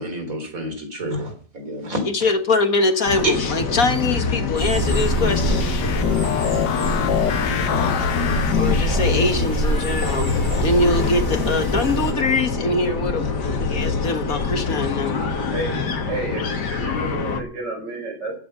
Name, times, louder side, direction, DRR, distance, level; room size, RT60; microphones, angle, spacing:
voice 1, 0.0-2.0 3.0-3.5, right 1 dB, 50° right, 4.4 m, -28 dB
voice 2, 2.1-5.6 8.6-10.3 10.6-13.3 13.6-15.2, left 2 dB, 55° left, 1.8 m, -23 dB
sound 1, 3.1-17.4, left 4 dB, 70° left, 2.2 m, -25 dB
sound 2, 4.6-12.1, right 2 dB, 10° right, 7.8 m, -26 dB
sound 3, 4.8-9.3, left 10 dB, 85° left, 1.6 m, -25 dB
voice 3, 16.1-18.3, right 2 dB, 80° right, 6.4 m, -30 dB
15.5 x 8.6 x 6.7 m
omnidirectional pair, 1.9 m